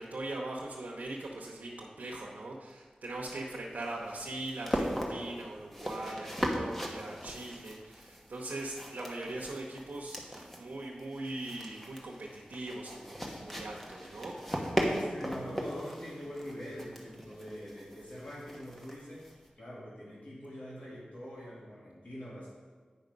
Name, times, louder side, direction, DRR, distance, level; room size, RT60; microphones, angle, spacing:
voice 1, 0.0-14.7, right 2 dB, 90° right, -3 dB, 0.9 m, -41 dB
sound 1, 3.1-19.5, equal, 10° left, 1.2 m, -38 dB
voice 2, 14.9-19.2 19.6-22.5, equal, 60° left, -8 dB, 2.3 m, -44 dB
8.8 x 5.3 x 5.3 m, 1.4 s
wide cardioid pair, 95°, 3 cm